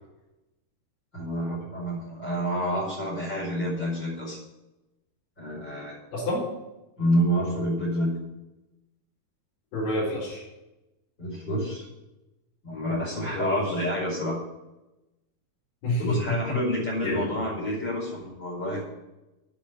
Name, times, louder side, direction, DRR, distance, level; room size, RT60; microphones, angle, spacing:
voice 1, 1.1-4.4 5.4-6.0 7.0-8.1 11.2-11.9 12.6-14.4 16.0-18.8, equal, 30° left, -3 dB, 5.5 m, -28 dB
voice 2, 6.1-6.5 9.7-10.4 13.3-13.6 15.8-16.6 17.0-17.3, left 1 dB, 75° left, -10 dB, 6.2 m, -28 dB
10.0 x 7.0 x 9.3 m, 0.99 s
omnidirectional pair, 4.5 m